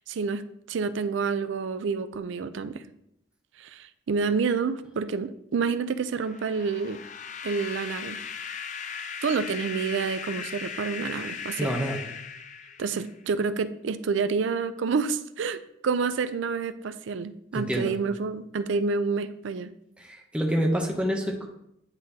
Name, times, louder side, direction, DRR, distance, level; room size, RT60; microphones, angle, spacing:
voice 1, 0.1-2.8 3.6-7.0 7.4-8.2 9.2-11.7 12.8-19.7, right 5 dB, 70° right, 13 dB, 0.4 m, -28 dB
sound 1, 6.2-13.2, left 6 dB, 40° left, 0.4 m, -38 dB
voice 2, 11.6-12.0 17.5-17.9 20.0-21.5, equal, 5° right, 0 dB, 0.6 m, -27 dB
9.6 x 3.7 x 2.7 m, 0.77 s
head